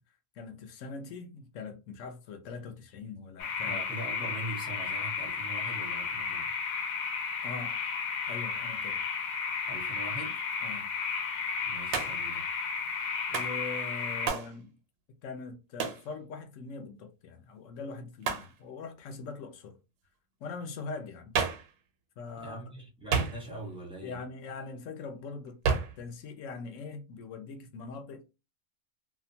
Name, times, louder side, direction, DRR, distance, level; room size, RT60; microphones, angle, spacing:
voice 1, 0.3-3.8 7.4-7.8 8.3-9.0 10.6-10.9 13.3-14.7 15.2-19.8 20.4-21.3 22.2-22.6 24.0-25.6 26.0-28.2, left 4 dB, 65° left, 0.8 m, -42 dB
sound 1, 3.4-14.3, left 5 dB, 85° left, 1.2 m, -33 dB
voice 2, 3.6-6.5 9.7-10.4 11.6-12.5 22.4-24.2, right 2 dB, 5° right, 0.6 m, -42 dB
Hands, 11.9-12.3 13.3-13.6 14.3-14.5 15.8-16.1 18.2-18.5 21.3-21.7 23.1-23.7 25.6-26.0, right 6 dB, 85° right, 1.1 m, -30 dB
2.8 x 2.2 x 2.6 m
omnidirectional pair, 1.6 m